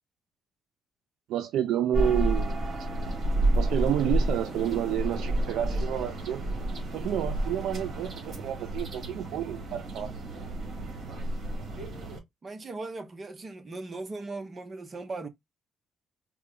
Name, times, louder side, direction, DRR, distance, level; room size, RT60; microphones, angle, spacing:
voice 1, 1.3-2.6 3.5-6.4 6.9-10.1, right 11 dB, 85° right, 0.4 m, -29 dB
sound 1, 1.9-12.2, right 1 dB, 55° right, 2.1 m, -30 dB
voice 2, 12.4-15.3, right 3 dB, 35° right, 0.8 m, -38 dB
4.5 x 2.1 x 3.7 m
cardioid pair, 90°, 0 cm